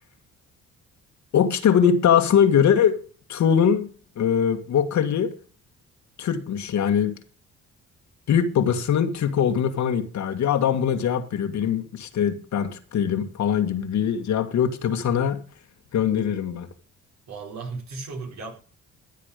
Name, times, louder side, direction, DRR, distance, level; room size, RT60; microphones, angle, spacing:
voice 1, 1.3-3.0 3.3-3.9 4.2-5.3 6.2-7.2 8.3-15.4 15.9-16.7, left 8 dB, 70° left, 2.0 m, -22 dB
voice 2, 17.3-18.6, right 3 dB, 65° right, 4.6 m, -35 dB
15.0 x 7.6 x 5.2 m
cardioid pair, 90°, 30 cm